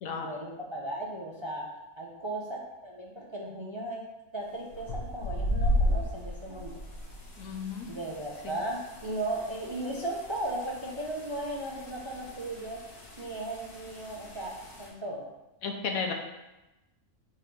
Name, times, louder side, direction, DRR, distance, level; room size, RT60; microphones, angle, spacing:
voice 1, 0.1-1.7 2.0-4.1 4.3-6.8 7.9-12.8 13.2-14.5 14.8-15.3, right 1 dB, 25° right, -2 dB, 0.6 m, -36 dB
sound 1, 4.7-14.9, equal, 90° left, 1.8 m, -35 dB
voice 2, 7.4-7.9 8.4-8.6 15.6-16.1, left 5 dB, 70° left, 3 dB, 1.2 m, -33 dB
6.6 x 3.1 x 5.4 m, 0.99 s
omnidirectional pair, 1.5 m